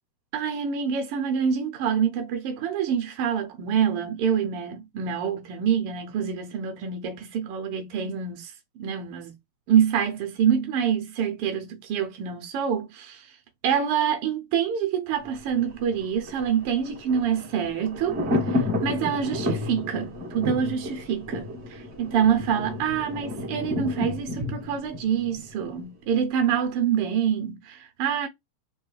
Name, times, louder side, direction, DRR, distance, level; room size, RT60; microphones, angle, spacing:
voice 1, 0.3-8.5 8.8-9.3 9.7-13.3 13.6-18.2 18.5-28.3, right 8 dB, 75° right, 1.3 m, -26 dB
Thunder, 15.2-26.1 26.4-26.5, left 2 dB, 45° right, 0.8 m, -31 dB
4.5 x 3.2 x 3.1 m
omnidirectional pair, 3.3 m